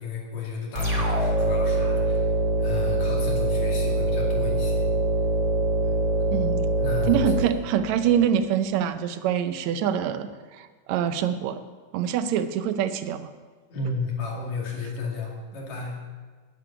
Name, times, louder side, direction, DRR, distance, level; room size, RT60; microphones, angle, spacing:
voice 1, 0.0-2.3 2.6-4.9 5.8-5.9 6.8-7.4 13.7-16.0, left 4 dB, 55° left, -2 dB, 3.6 m, -33 dB
sound 1, 0.7-8.2, right 1 dB, 30° right, 2.6 m, -24 dB
voice 2, 6.3-6.6 7.1-11.6 11.9-13.3, right 9 dB, 80° right, 10 dB, 1.6 m, -25 dB
10.0 x 7.9 x 9.7 m, 1.4 s
omnidirectional pair, 3.8 m